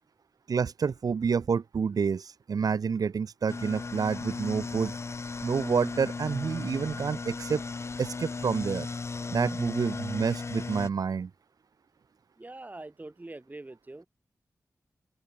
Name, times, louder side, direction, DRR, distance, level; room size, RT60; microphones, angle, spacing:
voice 1, 0.5-4.9 5.4-7.6 8.0-8.9 9.3-11.3, right 6 dB, 80° right, 1.6 m, -28 dB
sound 1, 3.5-10.9, left 4 dB, 45° left, 0.9 m, -36 dB
voice 2, 12.4-14.1, right 2 dB, 25° right, 6.3 m, -44 dB
open air
wide cardioid pair, 75°, 6 cm